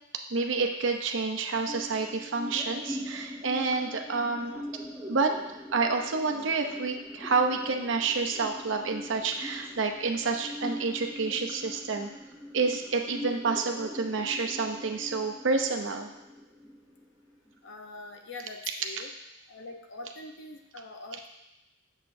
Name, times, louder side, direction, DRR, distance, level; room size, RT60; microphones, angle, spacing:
voice 1, 0.3-4.7 5.1-5.3 5.7-12.1 12.5-16.1, right 4 dB, 65° right, 4 dB, 0.7 m, -29 dB
sound 1, 1.5-17.5, equal, 5° right, 0.9 m, -42 dB
voice 2, 17.6-19.1 19.5-21.3, left 2 dB, 65° left, 3 dB, 0.8 m, -43 dB
7.3 x 6.6 x 2.6 m, 0.90 s
head